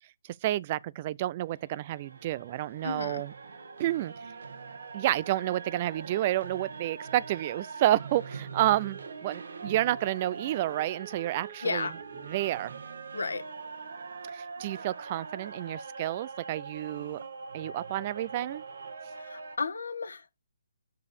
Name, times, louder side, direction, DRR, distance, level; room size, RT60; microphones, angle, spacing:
voice 1, 0.4-3.3 3.8-4.1 4.9-12.0 12.2-12.8 14.3-17.2 17.5-18.6, right 14 dB, 30° right, 0.4 m, -30 dB
sound 1, 1.4-19.6, right 4 dB, 70° right, 1.4 m, -43 dB
voice 2, 2.8-3.2 11.6-11.9 13.1-13.4 19.2-20.4, left 4 dB, 80° left, 1.4 m, -33 dB
6.8 x 4.8 x 6.6 m
hypercardioid pair, 155°, 0 cm